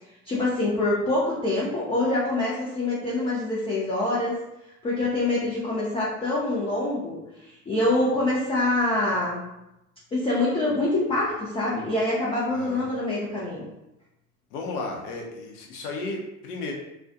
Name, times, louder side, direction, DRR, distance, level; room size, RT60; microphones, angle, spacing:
voice 1, 0.2-4.4 4.8-9.4 10.1-13.7, left 2 dB, 15° left, -6 dB, 0.4 m, -25 dB
voice 2, 12.5-12.9 14.5-16.7, left 3 dB, 75° left, 0 dB, 0.7 m, -34 dB
2.4 x 2.1 x 2.5 m, 0.89 s
hypercardioid pair, 70°, 46 cm